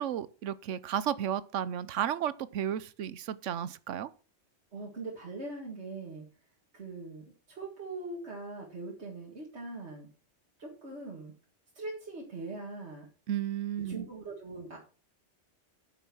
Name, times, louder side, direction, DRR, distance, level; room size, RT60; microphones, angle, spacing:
voice 1, 0.0-4.1 13.3-14.1, right 10 dB, 80° right, 1.0 m, -33 dB
voice 2, 4.7-6.3 6.7-10.1 10.6-11.3 11.7-13.1 13.9-14.8, right 3 dB, 60° right, 2.2 m, -41 dB
9.1 x 6.3 x 6.1 m
omnidirectional pair, 1.3 m